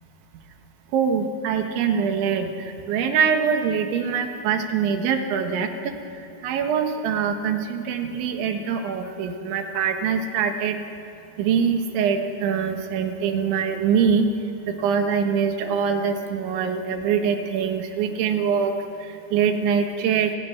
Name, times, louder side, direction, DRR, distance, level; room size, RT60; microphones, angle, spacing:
voice 1, 0.9-2.5 2.9-5.9 6.4-10.8 11.4-14.3 14.7-18.7 19.3-20.3, right 7 dB, 85° right, 5 dB, 3.9 m, -23 dB
30.0 x 19.5 x 6.2 m, 3.0 s
omnidirectional pair, 5.3 m